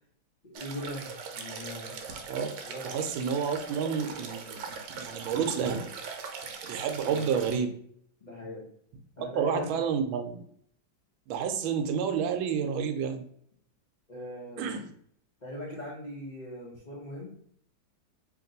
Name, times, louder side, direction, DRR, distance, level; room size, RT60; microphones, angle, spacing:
voice 1, 0.4-2.1 2.6-3.0 7.0-7.3 8.2-8.7 9.2-9.8 14.1-14.6 15.4-17.4, equal, 85° left, -6 dB, 0.4 m, -40 dB
sound 1, 0.5-7.6, right 5 dB, 70° right, 1.2 m, -41 dB
voice 2, 2.8-5.9 6.6-7.7 9.4-10.4 11.3-13.2 14.6-14.9, right 6 dB, 90° right, 7 dB, 1.4 m, -30 dB
2.9 x 2.9 x 3.9 m, 0.64 s
omnidirectional pair, 2.1 m